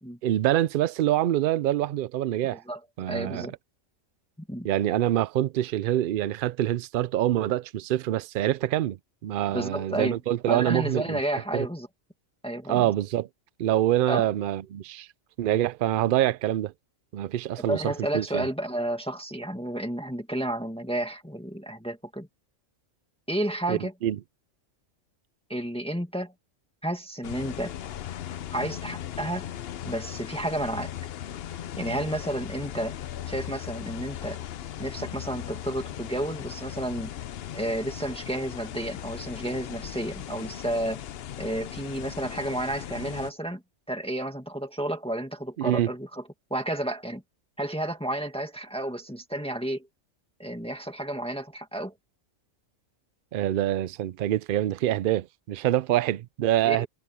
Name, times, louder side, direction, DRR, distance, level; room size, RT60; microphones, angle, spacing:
voice 1, 0.2-2.6 3.0-3.5 4.6-11.2 11.5-11.7 12.7-13.3 13.6-15.1 15.4-16.7 17.1-18.5 23.7-24.2 45.6-45.9 53.3-56.9, right 13 dB, 65° right, 0.5 m, -25 dB
voice 2, 3.1-3.5 4.5-4.7 9.5-10.2 10.5-11.9 12.4-12.9 14.1-14.3 17.6-22.3 23.3-23.9 25.5-26.3 26.8-27.7 28.5-29.5 29.8-30.9 31.8-33.0 33.3-34.4 34.8-37.1 37.5-41.0 41.4-43.6 43.9-46.2 46.5-47.2 47.6-49.9 50.4-51.9 56.6-56.9, right 1 dB, 5° left, 1.8 m, -31 dB
sound 1, 27.2-43.3, left 11 dB, 60° left, 0.8 m, -38 dB
omnidirectional pair, 1.3 m